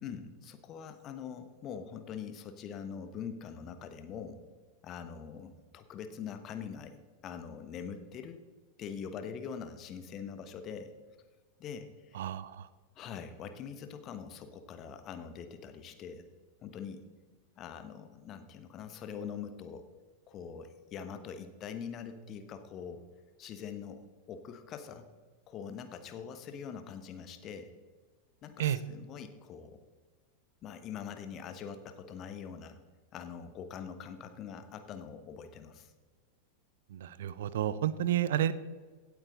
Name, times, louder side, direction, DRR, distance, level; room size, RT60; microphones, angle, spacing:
voice 1, 0.0-4.4 4.8-8.4 8.8-10.9 11.6-12.3 13.0-16.3 16.6-17.0 17.6-19.8 20.3-23.0 23.4-25.0 25.5-27.7 28.4-29.8 30.6-32.8 33.1-35.9, left 7 dB, 35° left, 9 dB, 1.2 m, -43 dB
voice 2, 12.1-12.7 28.6-28.8 36.9-38.5, right 11 dB, 60° right, 16 dB, 0.6 m, -31 dB
16.5 x 8.5 x 3.9 m, 1.4 s
figure-of-eight pair, 90°, 0 cm